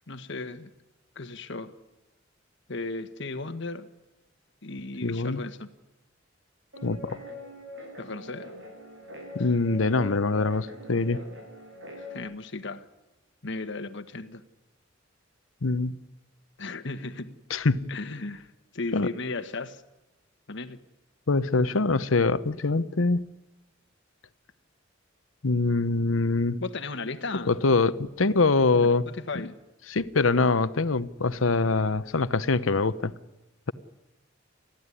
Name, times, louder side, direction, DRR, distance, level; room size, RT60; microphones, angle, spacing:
voice 1, 0.1-0.7 1.1-1.7 2.7-3.9 4.6-5.7 8.0-8.6 9.4-9.5 12.0-12.9 13.4-14.4 16.6-17.4 17.9-19.8 20.5-20.8 26.6-27.5 28.7-29.6, left 3 dB, 65° left, 1.4 m, -36 dB
voice 2, 5.0-5.4 6.8-7.2 9.3-11.2 15.6-16.0 17.5-17.9 18.9-19.1 21.3-23.2 25.4-26.6 27.5-29.0 29.9-33.1, left 3 dB, 90° left, 0.9 m, -24 dB
Guitar, 6.7-12.2, left 1 dB, 70° right, 7.9 m, -43 dB
30.0 x 14.5 x 9.9 m
head